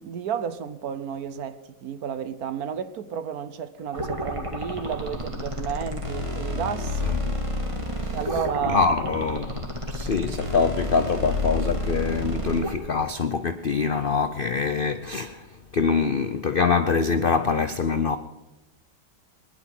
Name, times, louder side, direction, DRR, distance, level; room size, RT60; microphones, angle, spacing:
voice 1, 0.0-7.1 8.1-8.9, right 8 dB, 60° right, 1.2 m, -31 dB
sound 1, 3.9-12.7, left 1 dB, 20° right, 1.7 m, -30 dB
voice 2, 7.9-8.4 8.7-18.2, left 5 dB, 70° left, 0.5 m, -25 dB
21.0 x 10.5 x 6.0 m
omnidirectional pair, 1.9 m